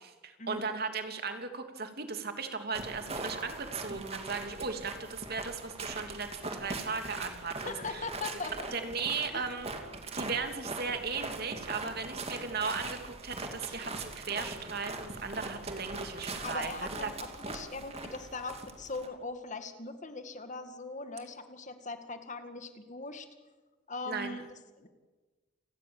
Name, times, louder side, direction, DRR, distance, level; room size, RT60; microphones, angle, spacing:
voice 1, 0.0-8.0 8.7-9.7 10.1-17.1 24.0-24.4, right 5 dB, 55° right, 6 dB, 2.9 m, -37 dB
sound 1, 2.7-19.1, right 3 dB, 30° right, 2.5 m, -41 dB
voice 2, 7.6-8.7 9.3-9.5 16.4-23.3 23.9-24.9, left 3 dB, 40° left, 8 dB, 2.1 m, -40 dB
29.0 x 19.5 x 7.3 m, 1.3 s
head